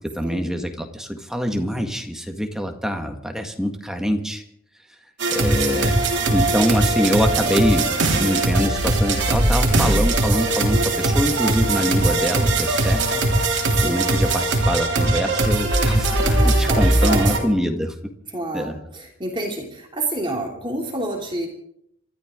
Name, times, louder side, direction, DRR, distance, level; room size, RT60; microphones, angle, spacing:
voice 1, 0.1-4.4 5.3-6.0 6.3-13.3 13.8-17.9 18.5-18.8, equal, ahead, 4 dB, 1.7 m, -24 dB
sound 1, 5.2-17.4, right 2 dB, 55° right, 3.3 m, -20 dB
voice 2, 16.2-17.5 18.3-21.5, right 2 dB, 20° right, 0 dB, 2.9 m, -29 dB
27.5 x 13.5 x 3.8 m, 0.73 s
head